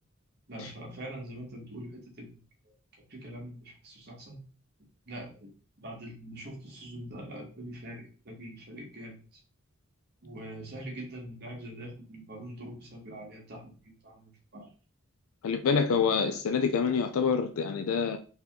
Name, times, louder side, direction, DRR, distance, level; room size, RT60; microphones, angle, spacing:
voice 1, 0.5-2.7 3.1-4.4 5.1-5.5 5.8-9.4 10.2-14.7, right 1 dB, 50° right, 1.6 m, -43 dB
voice 2, 15.4-18.2, left 5 dB, 90° left, 0.4 m, -26 dB
4.0 x 3.0 x 3.6 m
head